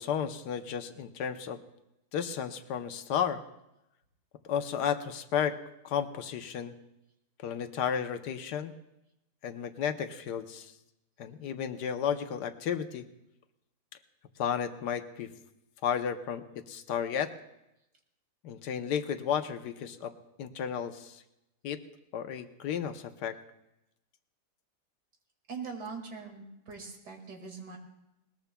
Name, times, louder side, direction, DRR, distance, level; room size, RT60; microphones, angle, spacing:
voice 1, 0.0-1.6 2.1-3.4 4.4-5.6 5.8-6.7 7.4-8.7 9.4-10.7 11.2-13.1 14.4-15.3 15.8-17.3 18.4-20.1 20.4-21.2 21.6-21.8 22.1-23.4, left 8 dB, 85° left, 9 dB, 1.4 m, -33 dB
voice 2, 25.5-27.8, right 5 dB, 80° right, 2 dB, 2.6 m, -42 dB
20.5 x 19.5 x 2.2 m, 0.89 s
omnidirectional pair, 1.8 m